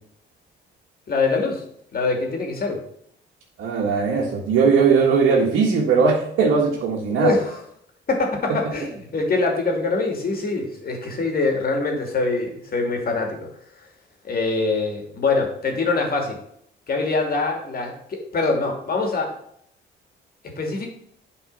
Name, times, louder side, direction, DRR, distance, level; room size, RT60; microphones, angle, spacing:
voice 1, 1.1-1.6 1.9-2.8 7.1-7.6 8.1-13.4 14.2-16.4 16.9-19.3 20.6-20.9, left 3 dB, 50° left, 2 dB, 2.6 m, -24 dB
voice 2, 3.6-7.3, right 5 dB, 80° right, -3 dB, 1.7 m, -19 dB
8.6 x 4.8 x 5.5 m, 0.69 s
cardioid pair, 90°, 20 cm